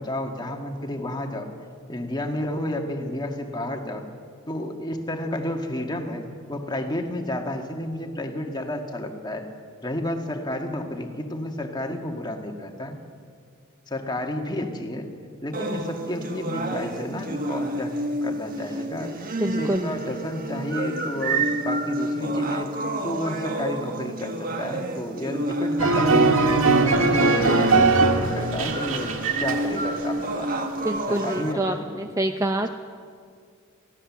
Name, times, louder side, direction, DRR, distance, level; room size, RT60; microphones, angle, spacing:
voice 1, 0.0-1.5 1.9-4.0 4.5-6.2 6.5-9.5 9.8-13.0 13.9-15.1 15.4-17.9 18.2-19.1 19.5-22.7 23.0-30.6 31.1-32.0, left 1 dB, 20° left, 3 dB, 1.7 m, -31 dB
sound 1, 15.5-31.5, right 2 dB, 40° right, 1.5 m, -29 dB
voice 2, 19.4-19.9 30.8-32.7, right 1 dB, 15° right, 6 dB, 0.6 m, -26 dB
sound 2, 25.8-30.2 30.5-30.9, right 3 dB, 65° right, 1.8 m, -20 dB
23.0 x 16.0 x 7.3 m, 2.2 s
head